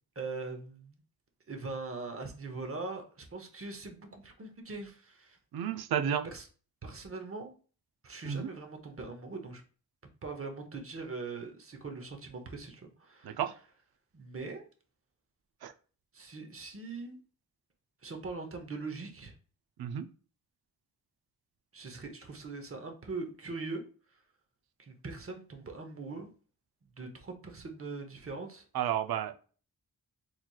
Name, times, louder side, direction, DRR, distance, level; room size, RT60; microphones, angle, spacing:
voice 1, 0.2-1.0 1.5-5.4 6.3-6.5 6.8-7.5 8.0-9.6 10.2-13.4 14.1-14.7 16.1-17.2 18.0-19.3 21.7-23.8 24.8-26.3 27.0-28.6, right 3 dB, 40° right, 4 dB, 0.8 m, -41 dB
voice 2, 5.5-6.3 8.2-8.5 13.2-13.5 15.6-15.7 19.8-20.1 28.7-29.3, right 9 dB, 85° right, 8 dB, 0.5 m, -31 dB
3.9 x 3.0 x 2.3 m, 0.38 s
wide cardioid pair, 125°, 36 cm